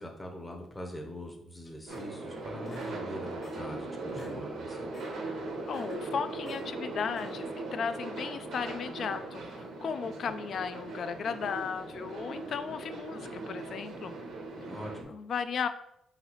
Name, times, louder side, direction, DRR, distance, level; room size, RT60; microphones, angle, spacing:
voice 1, 0.0-4.9 14.6-15.1, left 1 dB, 10° left, 1 dB, 0.7 m, -43 dB
sound 1, 1.6-2.3 2.7-3.8 4.0-4.4 4.7-5.1 5.6-6.7 7.1-7.6, left 2 dB, 40° left, 1.1 m, -52 dB
sound 2, 1.9-15.0, right 2 dB, 75° right, 1.0 m, -39 dB
voice 2, 5.7-14.2 15.1-15.7, left 6 dB, 60° left, 10 dB, 0.4 m, -35 dB
3.9 x 3.9 x 2.9 m, 0.78 s
cardioid pair, 90°, 0 cm